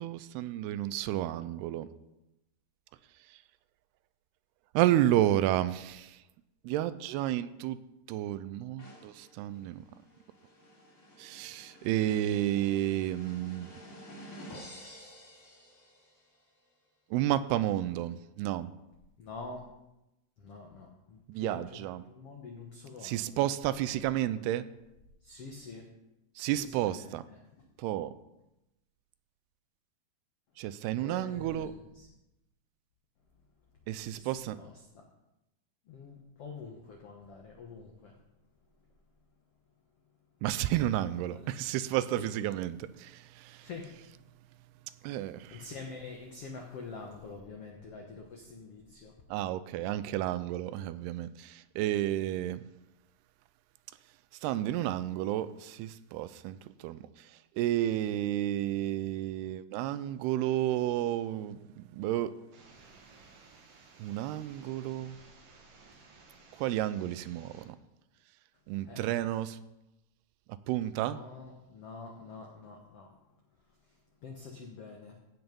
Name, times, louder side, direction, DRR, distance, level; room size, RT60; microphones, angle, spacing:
voice 1, 0.0-1.9 4.7-6.2 6.6-7.8 8.1-9.8 11.2-13.7 17.1-18.7 21.3-22.0 23.0-24.7 26.4-27.2 27.8-28.1 30.6-31.7 33.9-34.6 40.4-43.7 45.0-45.7 49.3-52.6 54.4-57.0 57.6-62.3 64.0-65.2 66.6-67.8 68.7-69.6 70.7-71.2, right 13 dB, 85° right, 14 dB, 2.6 m, -31 dB
sound 1, 8.8-16.4, equal, 15° left, 2.7 m, -51 dB
voice 2, 19.2-19.7 20.4-23.5 25.2-25.9 26.6-27.6 31.0-32.1 34.0-35.0 35.9-38.1 41.2-41.5 42.2-42.3 43.6-43.9 45.5-49.1 68.8-69.3 71.0-73.1 73.9-74.0 74.2-75.2, left 4 dB, 85° left, 1 dB, 1.3 m, -46 dB
sound 2, 62.5-67.7, right 4 dB, 50° right, 2.1 m, -57 dB
16.0 x 6.0 x 5.3 m, 0.92 s
omnidirectional pair, 4.6 m